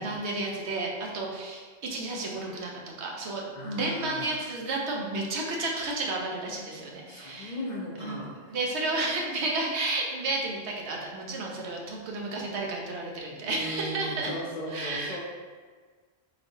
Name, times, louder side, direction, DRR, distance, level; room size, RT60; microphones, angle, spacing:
voice 1, 0.0-7.6 8.0-14.3 14.7-15.2, right 2 dB, 80° right, -1 dB, 1.0 m, -32 dB
voice 2, 3.6-4.3 7.1-8.6 13.4-15.2, equal, 50° left, -3 dB, 0.6 m, -37 dB
4.2 x 3.0 x 2.7 m, 1.5 s
omnidirectional pair, 1.1 m